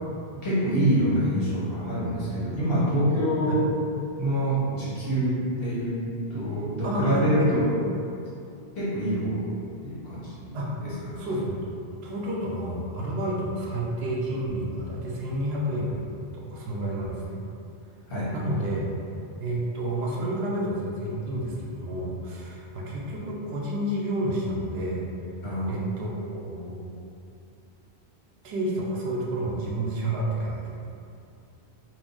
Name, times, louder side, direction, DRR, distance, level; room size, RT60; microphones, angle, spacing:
voice 1, 0.3-3.6 4.2-6.0 6.3-7.7 8.8-9.5 9.8-11.3 18.1-18.3 25.4-25.7, equal, 65° left, -9 dB, 1.2 m, -26 dB
voice 2, 6.8-7.5 10.5-10.8 11.2-11.6 12.0-17.4 18.3-18.9 19.4-25.1 25.7-26.8 28.4-30.8, right 1 dB, 80° right, -3 dB, 0.8 m, -30 dB
2.6 x 2.2 x 3.7 m, 2.6 s
omnidirectional pair, 1.1 m